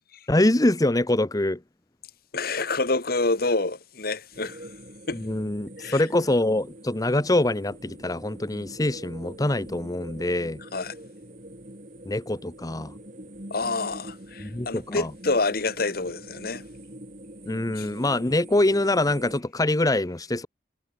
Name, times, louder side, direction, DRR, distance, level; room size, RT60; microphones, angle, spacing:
voice 1, 0.3-1.6 5.1-10.6 12.1-12.9 14.4-15.1 17.5-20.5, left 1 dB, 20° left, 0.9 m, -24 dB
voice 2, 2.3-4.7 5.1-5.2 5.8-6.0 10.7-10.9 13.5-16.6 17.8-17.9, left 3 dB, 60° left, 1.9 m, -27 dB
sound 1, 4.3-19.4, right 1 dB, 45° right, 6.1 m, -44 dB
head